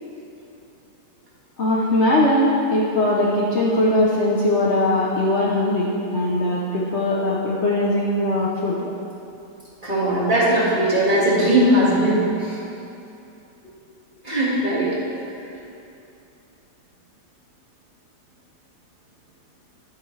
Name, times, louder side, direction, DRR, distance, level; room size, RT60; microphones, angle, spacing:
voice 1, 1.6-8.9, left 1 dB, 50° left, -5 dB, 1.0 m, -20 dB
voice 2, 9.8-12.6 14.2-15.0, right 1 dB, 30° right, -8 dB, 2.1 m, -19 dB
10.5 x 8.9 x 3.2 m, 2.7 s
omnidirectional pair, 1.7 m